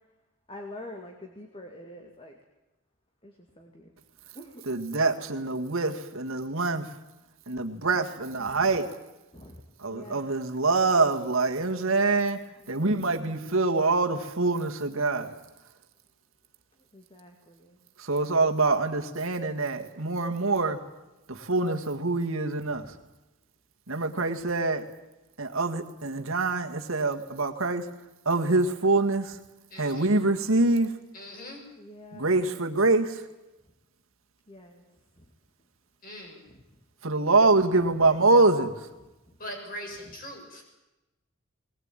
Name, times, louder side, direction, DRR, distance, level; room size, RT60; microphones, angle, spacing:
voice 1, 0.5-2.4 3.2-3.9 4.3-4.6 8.4-8.7 9.3-9.6 9.9-10.3 12.6-13.1 16.9-17.8 22.7-23.0 31.8-32.4 34.5-34.9 35.2-35.3 36.5-36.6 39.0-39.4 40.1-40.2, left 1 dB, 25° left, 3 dB, 2.3 m, -46 dB
voice 2, 4.7-6.9 7.5-8.9 9.8-12.4 12.7-15.3 18.0-20.8 21.3-22.8 23.9-24.9 25.4-27.8 28.3-29.4 29.8-30.9 32.1-33.2 37.0-38.8, right 3 dB, 75° right, 5 dB, 1.9 m, -25 dB
voice 3, 29.7-30.1 31.1-31.6 36.0-36.4 39.4-40.6, equal, 40° left, 1 dB, 6.8 m, -41 dB
20.5 x 20.0 x 9.0 m, 1.0 s
head